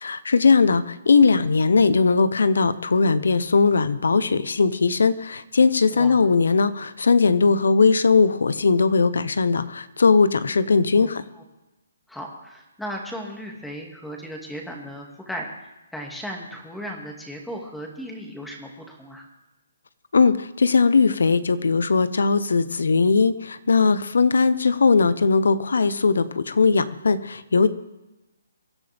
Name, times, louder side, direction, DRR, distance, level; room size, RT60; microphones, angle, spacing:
voice 1, 0.0-11.2 20.1-27.7, left 4 dB, 80° left, 14 dB, 1.0 m, -19 dB
voice 2, 5.9-6.2 10.9-11.1 11.4-11.5 12.1-19.3, equal, 5° left, 1 dB, 2.3 m, -36 dB
24.0 x 11.0 x 3.6 m, 1.0 s
hypercardioid pair, 155°, 0 cm